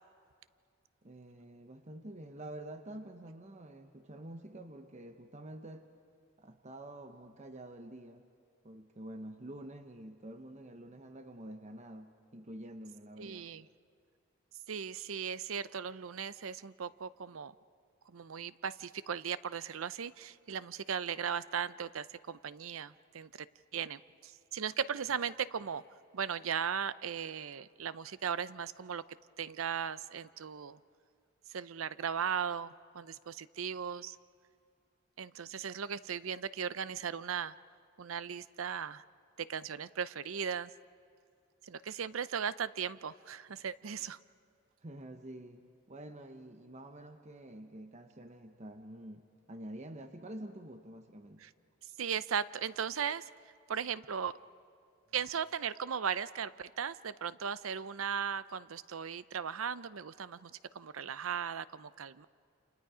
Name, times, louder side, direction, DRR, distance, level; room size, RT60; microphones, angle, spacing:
voice 1, 1.0-5.9 6.4-8.2 8.6-13.5 44.8-45.6 45.9-51.4, right 1 dB, 35° right, 7 dB, 0.9 m, -48 dB
voice 2, 13.2-13.7 14.7-17.5 18.1-23.3 23.7-25.8 26.1-29.0 29.4-30.8 31.5-34.2 35.2-37.5 38.0-39.0 39.4-40.7 41.6-44.2 51.4-51.5 52.0-53.3 53.7-54.3 55.1-62.3, right 7 dB, 85° right, 16 dB, 0.6 m, -37 dB
29.5 x 28.0 x 5.0 m, 2.3 s
head